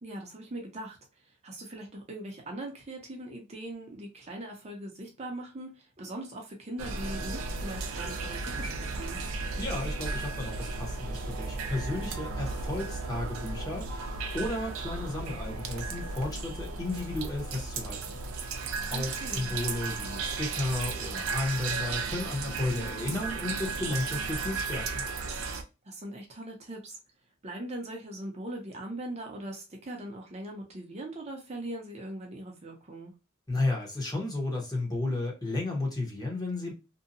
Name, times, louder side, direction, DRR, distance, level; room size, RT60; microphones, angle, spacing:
voice 1, 0.0-9.2 18.8-19.6 25.8-27.0 27.4-33.1, right 1 dB, 30° right, 0.6 m, -41 dB
sound 1, 6.8-25.6, right 3 dB, 90° right, 0.5 m, -35 dB
voice 2, 9.6-25.0 33.5-36.7, left 2 dB, 20° left, 0.9 m, -33 dB
2.7 x 2.2 x 2.6 m
head